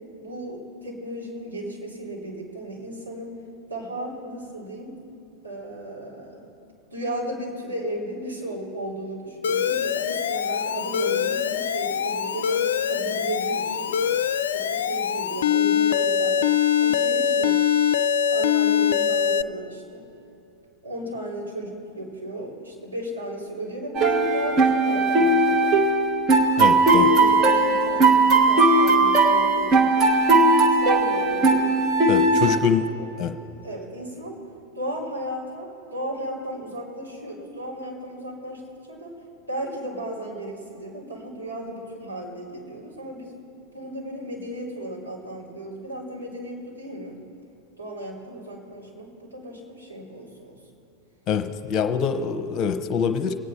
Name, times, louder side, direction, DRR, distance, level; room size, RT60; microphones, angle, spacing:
voice 1, 0.2-3.4 3.7-5.0 5.4-6.5 6.9-14.1 14.5-16.5 16.8-17.6 18.3-20.0 20.8-25.8 26.9-31.8 32.2-32.6 33.0-33.1 33.6-34.4 34.7-38.6 38.9-39.1 39.5-43.4 43.7-47.2 47.8-50.6, right 1 dB, 85° right, -6 dB, 4.1 m, -35 dB
Alarm, 9.4-19.4, left 8 dB, 60° left, 0.4 m, -23 dB
sound 1, 23.9-32.6, right 3 dB, 30° right, 1.3 m, -18 dB
voice 2, 26.6-27.1 32.1-32.9 33.2-33.3 51.3-53.4, left 7 dB, 30° left, 9 dB, 1.0 m, -24 dB
24.0 x 9.3 x 4.3 m, 2.8 s
figure-of-eight pair, 90°, 0 cm